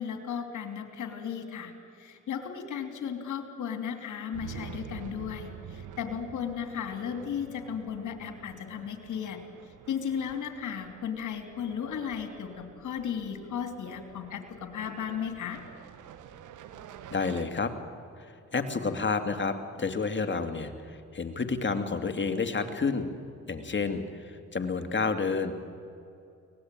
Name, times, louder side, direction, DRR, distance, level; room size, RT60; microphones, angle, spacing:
voice 1, 0.0-1.7 2.0-9.4 9.9-15.6, left 7 dB, 75° left, 6 dB, 3.0 m, -35 dB
sound 1, 4.3-17.4, right 8 dB, 80° right, 1.3 m, -48 dB
voice 2, 17.1-17.7 18.2-23.1 23.5-25.5, left 4 dB, 40° left, 7 dB, 2.5 m, -30 dB
24.0 x 19.0 x 9.1 m, 2.5 s
supercardioid pair, 55°, 30 cm